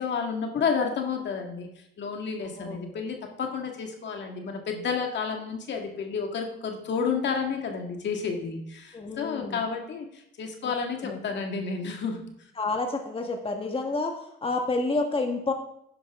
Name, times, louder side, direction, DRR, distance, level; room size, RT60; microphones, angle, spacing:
voice 1, 0.0-1.7 2.0-12.2, left 5 dB, 65° left, 3 dB, 2.0 m, -31 dB
voice 2, 2.4-3.0 8.9-9.6 10.6-10.7 11.0-11.2 12.6-15.5, left 3 dB, 30° left, 3 dB, 1.7 m, -30 dB
12.0 x 10.5 x 3.7 m, 0.76 s
cardioid pair, 90°, 20 cm